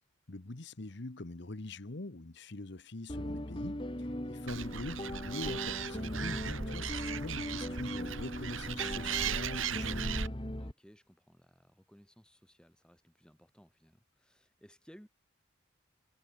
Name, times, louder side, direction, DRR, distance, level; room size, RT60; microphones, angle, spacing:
voice 1, 0.3-10.3, left 2 dB, 55° left, 1.2 m, -44 dB
sound 1, 3.1-10.7, left 1 dB, 25° left, 1.9 m, -39 dB
Animal, 4.5-10.3, right 7 dB, 75° right, 1.9 m, -37 dB
voice 2, 10.6-15.1, equal, 5° left, 7.2 m, -60 dB
head